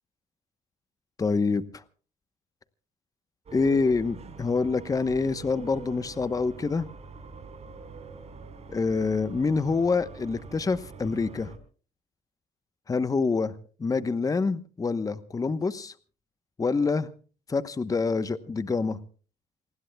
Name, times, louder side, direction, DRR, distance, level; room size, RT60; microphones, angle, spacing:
voice 1, 1.2-1.8 3.5-6.9 8.7-11.5 12.9-13.5 13.8-15.9 16.6-17.1 17.5-19.0, left 4 dB, 20° left, 13 dB, 0.9 m, -26 dB
sound 1, 3.5-11.6, right 4 dB, 40° right, 4.5 m, -45 dB
28.5 x 19.5 x 2.3 m, 0.39 s
cardioid pair, 110°, 17 cm